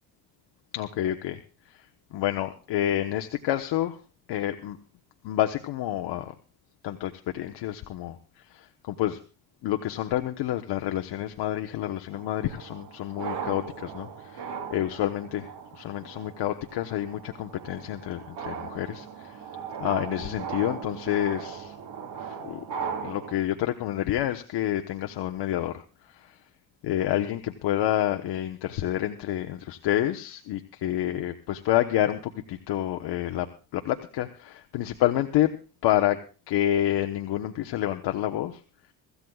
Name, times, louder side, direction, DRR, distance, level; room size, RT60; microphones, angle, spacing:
voice 1, 0.7-4.0 4.3-4.8 5.2-6.3 6.8-9.2 9.6-19.4 19.8-21.7 22.2-22.6 23.0-26.4 26.8-35.5 35.8-36.2 36.5-38.6, left 13 dB, 75° left, 6 dB, 1.1 m, -29 dB
sound 1, 12.1-23.3, right 7 dB, 70° right, 3.7 m, -38 dB
24.5 x 14.0 x 2.4 m, 0.35 s
cardioid pair, 120°, 41 cm